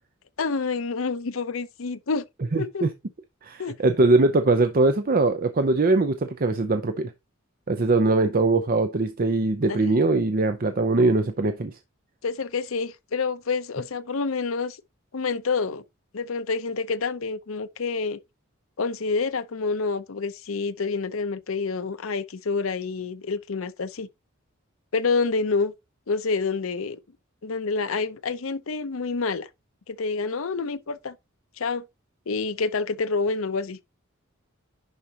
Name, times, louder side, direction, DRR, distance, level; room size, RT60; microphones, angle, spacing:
voice 1, 0.4-2.2 2.6-2.9 3.6-3.7 9.7-9.8 12.2-14.8 15.1-15.8 16.1-18.2 18.8-24.1 24.9-25.7 26.1-27.0 27.4-29.5 29.9-31.1 31.6-31.8 32.3-33.8, left 4 dB, 75° left, 0.7 m, -28 dB
voice 2, 3.4-7.1 7.7-11.7, right 3 dB, 45° right, 0.6 m, -21 dB
10.5 x 4.8 x 2.8 m
head